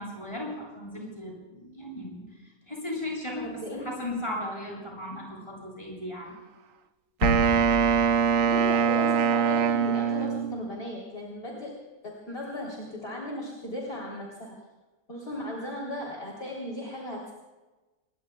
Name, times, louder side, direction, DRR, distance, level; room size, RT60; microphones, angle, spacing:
voice 1, 0.0-2.2 2.7-6.4, left 1 dB, 20° left, -3 dB, 8.1 m, -36 dB
voice 2, 3.4-4.0 8.4-11.7 12.0-14.6 15.1-17.3, left 1 dB, 40° left, -3 dB, 3.7 m, -36 dB
sound 1, 7.2-9.7, equal, 65° left, 2.3 m, -32 dB
Wind instrument woodwind instrument, 7.2-10.7, right 7 dB, 65° right, 1.2 m, -23 dB
28.0 x 22.5 x 2.3 m, 1.2 s
omnidirectional pair, 1.5 m